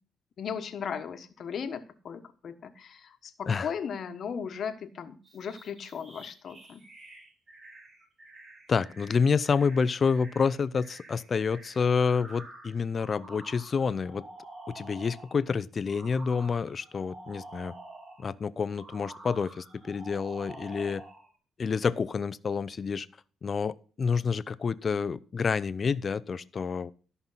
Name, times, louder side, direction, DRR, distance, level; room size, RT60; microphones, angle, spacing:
voice 1, 0.4-6.8, left 7 dB, 55° left, 1.3 m, -37 dB
sound 1, 5.2-15.4 15.9-18.3 18.7-21.3, right 2 dB, 40° right, 6.2 m, -49 dB
voice 2, 8.7-14.2 14.7-17.7 18.2-21.0 21.6-23.1 23.4-26.9, left 5 dB, 40° left, 0.6 m, -28 dB
13.0 x 5.5 x 5.7 m
cardioid pair, 90°, 0 cm